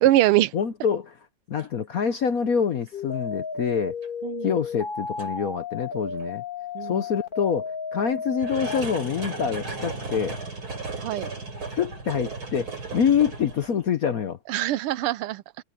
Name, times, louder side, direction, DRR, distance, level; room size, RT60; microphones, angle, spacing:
voice 1, 0.0-0.5 4.2-4.5 6.7-7.0 11.0-11.3 14.5-15.4, right 15 dB, 85° right, 1.6 m, -22 dB
voice 2, 0.5-1.2 1.5-4.0 4.4-6.4 6.8-10.4 11.8-14.4, left 7 dB, 60° left, 1.0 m, -26 dB
sound 1, 1.6-1.7 2.1-2.4 2.9-3.0 4.0-4.1 5.2-5.3 6.2-6.3 8.4-13.8, right 3 dB, 65° right, 5.7 m, -35 dB
sound 2, 2.9-8.8, left 5 dB, 25° left, 1.5 m, -33 dB
omnidirectional pair, 2.4 m